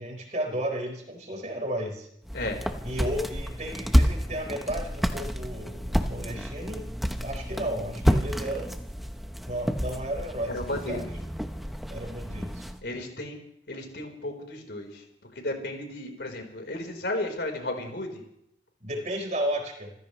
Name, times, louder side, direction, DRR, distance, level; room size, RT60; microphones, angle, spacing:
voice 1, 0.0-2.1 2.8-6.9 7.2-8.8 9.5-10.6 10.9-11.1 11.9-12.7 18.8-19.9, right 1 dB, 40° right, 3 dB, 4.5 m, -33 dB
sound 1, 2.2-12.8, equal, ahead, 1.0 m, -29 dB
voice 2, 10.5-11.0 12.8-13.4 13.7-15.0 15.3-18.2, left 1 dB, 75° left, 3 dB, 4.5 m, -34 dB
28.0 x 15.5 x 3.3 m, 0.76 s
head